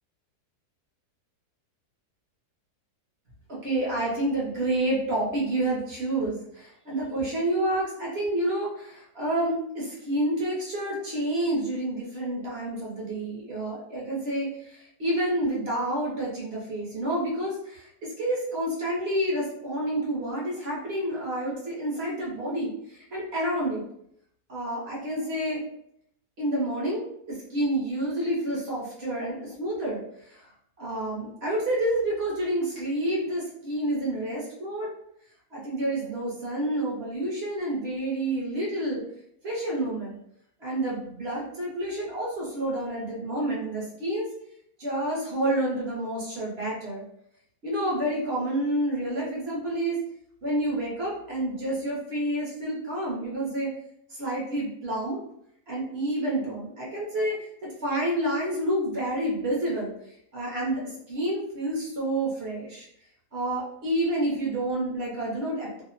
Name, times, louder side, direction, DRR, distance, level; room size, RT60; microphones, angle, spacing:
voice 1, 3.5-23.8 24.5-25.6 26.4-30.0 30.8-34.9 35.5-39.0 39.4-40.2 40.6-44.3 44.8-47.0 47.6-50.0 50.4-53.7 54.1-55.2 55.7-59.9 60.3-62.9 63.3-65.8, right 1 dB, 55° right, -5 dB, 0.8 m, -29 dB
2.7 x 2.0 x 2.5 m, 0.72 s
omnidirectional pair, 1.7 m